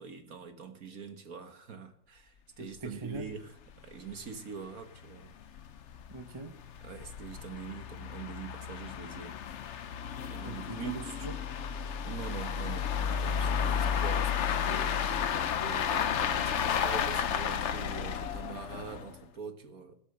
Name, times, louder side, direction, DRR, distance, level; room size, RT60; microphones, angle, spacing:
voice 1, 0.0-3.5 3.8-5.5 6.8-9.4 9.7-9.9 10.2-11.0 12.1-19.9, right 6 dB, 50° right, 1.5 m, -44 dB
voice 2, 2.6-3.3 6.1-6.6 10.4-11.5, right 3 dB, 20° right, 0.9 m, -42 dB
sound 1, 2.8-2.9 3.2-3.3 3.7-3.8 4.1-4.2 4.8-19.2, left 7 dB, 65° left, 0.7 m, -32 dB
17.0 x 8.3 x 6.7 m
omnidirectional pair, 2.0 m